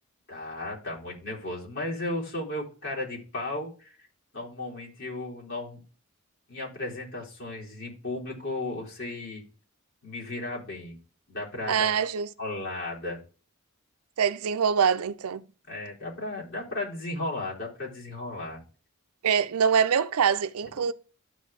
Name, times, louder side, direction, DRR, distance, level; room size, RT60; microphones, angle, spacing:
voice 1, 0.3-4.0 4.3-5.8 6.5-9.4 10.0-11.0 11.3-11.9 12.4-13.2 15.7-18.6 20.8-20.9, left 2 dB, 55° left, 4.2 m, -35 dB
voice 2, 11.7-12.3 14.2-15.4 19.2-20.9, right 7 dB, 85° right, 0.5 m, -24 dB
12.5 x 4.3 x 3.6 m
head